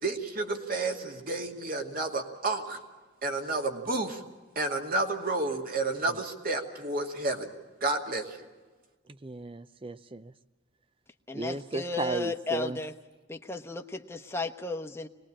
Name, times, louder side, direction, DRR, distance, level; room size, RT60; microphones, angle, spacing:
voice 1, 0.0-2.8 3.2-4.2 4.6-7.5 7.8-8.4, right 2 dB, 50° right, 3 dB, 2.3 m, -31 dB
voice 2, 9.2-10.3 11.3-12.8, right 2 dB, 30° right, 14 dB, 0.7 m, -35 dB
voice 3, 11.3-12.9 13.3-15.1, left 3 dB, 15° left, 5 dB, 1.0 m, -34 dB
24.0 x 20.0 x 8.8 m, 1.3 s
head